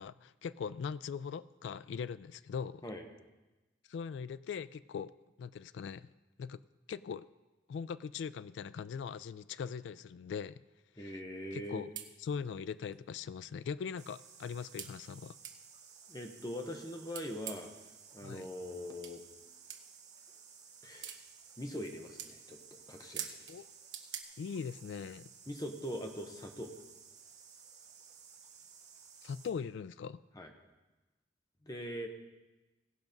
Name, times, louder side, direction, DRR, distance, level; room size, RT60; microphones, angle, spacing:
voice 1, 0.0-2.9 3.9-5.1 5.4-6.1 6.4-6.6 6.9-7.3 7.7-10.6 11.0-11.2 11.5-11.9 12.2-15.4 18.2-18.5 23.5-23.7 24.4-25.3 29.2-30.2, left 6 dB, 80° left, 16 dB, 0.3 m, -41 dB
voice 2, 11.0-11.8 16.1-17.7 18.1-19.2 20.8-21.1 21.6-23.4 25.5-26.7 30.3-30.5 31.6-32.1, equal, 20° left, 4 dB, 0.9 m, -42 dB
sound 1, 11.6-11.7 12.0-12.1 12.9-13.0 13.5-13.6 14.8-14.9 15.4-15.6 17.1-17.8 19.0-19.1 19.7-19.8 21.0-21.2 21.7-21.9 22.2-22.3 23.1-23.6 23.9-24.2, right 9 dB, 85° right, 1.0 m, -42 dB
sound 2, 14.0-29.5, right 6 dB, 40° right, 1.6 m, -56 dB
17.5 x 6.0 x 5.2 m, 1.1 s
head